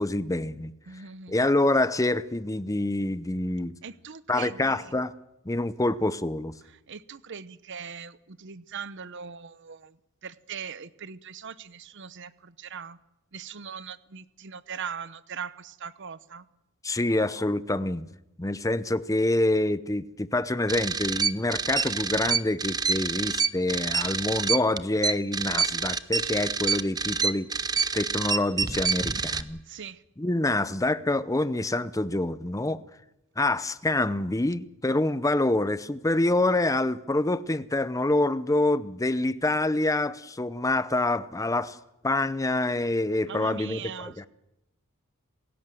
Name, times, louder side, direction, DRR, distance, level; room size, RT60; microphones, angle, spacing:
voice 1, 0.0-0.7 1.3-3.8 4.3-5.1 5.4-6.5 16.8-18.1 18.4-27.5 27.9-29.6 30.2-32.8 33.4-41.8 42.0-44.2, left 2 dB, 15° left, 0.7 m, -26 dB
voice 2, 0.9-1.4 3.8-4.9 6.6-13.0 13.3-16.4 29.7-30.0 43.2-44.3, right 6 dB, 60° right, 0.9 m, -40 dB
sound 1, 20.7-29.4, right 5 dB, 20° right, 0.8 m, -27 dB
28.0 x 16.5 x 7.7 m
head